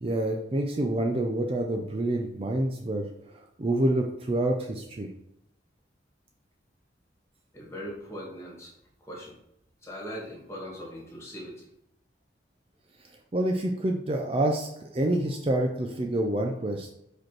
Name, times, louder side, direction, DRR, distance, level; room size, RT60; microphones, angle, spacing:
voice 1, 0.0-5.1 13.3-16.9, right 1 dB, 30° right, 2 dB, 0.5 m, -27 dB
voice 2, 7.5-8.7 9.0-9.4 9.8-11.7, equal, 15° left, -4 dB, 2.1 m, -40 dB
5.1 x 4.4 x 4.6 m, 0.77 s
head